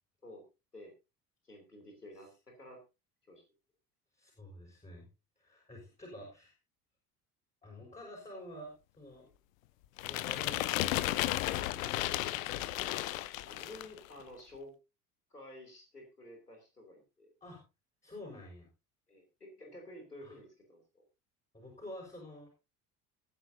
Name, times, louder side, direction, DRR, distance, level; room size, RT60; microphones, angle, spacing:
voice 1, 1.4-2.8 3.3-3.4 9.2-9.3 13.5-14.7 15.3-17.3 19.1-21.0, left 1 dB, 90° left, 3 dB, 3.2 m, -51 dB
voice 2, 4.1-5.1 5.4-6.5 7.6-9.2 10.1-12.8 17.4-17.6 18.0-18.7 20.2-20.4 21.5-22.5, left 1 dB, 15° left, -2 dB, 5.7 m, -49 dB
sound 1, 10.0-14.0, left 16 dB, 60° left, 0.8 m, -34 dB
19.5 x 9.8 x 2.7 m, 0.27 s
figure-of-eight pair, 60°, 45 cm